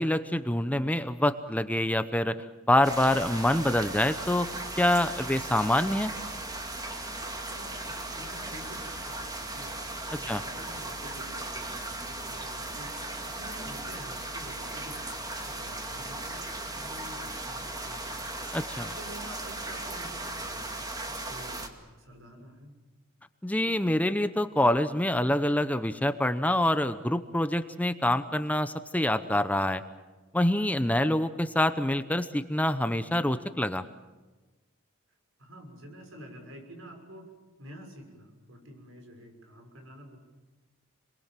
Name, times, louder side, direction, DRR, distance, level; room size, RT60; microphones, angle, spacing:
voice 1, 0.0-2.4 2.7-4.5 4.8-6.1 10.3-10.4 18.5-18.8 23.4-29.8 30.3-33.8, left 1 dB, 10° left, 11 dB, 0.8 m, -26 dB
sound 1, 2.8-21.7, right 2 dB, 20° right, 2.2 m, -37 dB
voice 2, 7.4-9.8 10.2-13.0 13.2-15.1 15.4-18.3 18.8-20.7 21.0-22.8 35.4-37.3 37.6-40.2, equal, 75° right, 4 dB, 6.4 m, -48 dB
29.5 x 22.5 x 7.6 m, 1.2 s
head